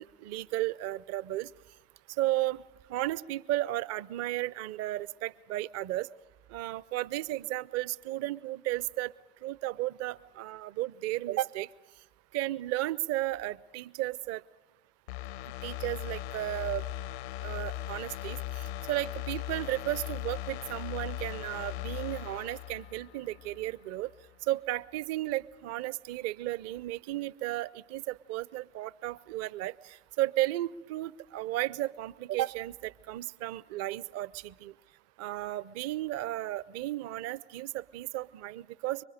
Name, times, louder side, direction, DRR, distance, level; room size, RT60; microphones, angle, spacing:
voice 1, 0.0-1.5 2.2-2.6 2.9-6.1 6.5-9.1 9.4-11.7 12.3-14.4 15.6-16.9 17.4-24.1 24.5-34.7 35.2-39.0, right 15 dB, 45° right, 21 dB, 0.6 m, -34 dB
sound 1, 15.1-23.7 24.1-24.2, left 14 dB, 70° left, 0.7 m, -39 dB
26.0 x 24.0 x 5.0 m, 1.1 s
figure-of-eight pair, 65°, 34 cm